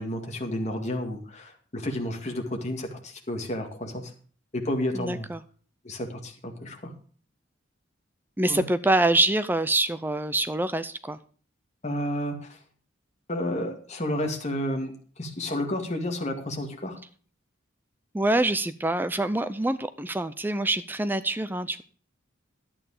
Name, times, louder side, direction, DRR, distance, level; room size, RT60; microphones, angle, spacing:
voice 1, 0.0-4.1 4.5-5.3 5.8-6.9 8.5-8.6 11.8-12.3 13.3-14.9 15.2-17.0, left 1 dB, 35° left, 2 dB, 2.2 m, -31 dB
voice 2, 4.9-5.4 8.4-11.2 18.1-21.8, right 2 dB, 10° right, 13 dB, 0.5 m, -25 dB
11.0 x 8.9 x 4.9 m, 0.43 s
head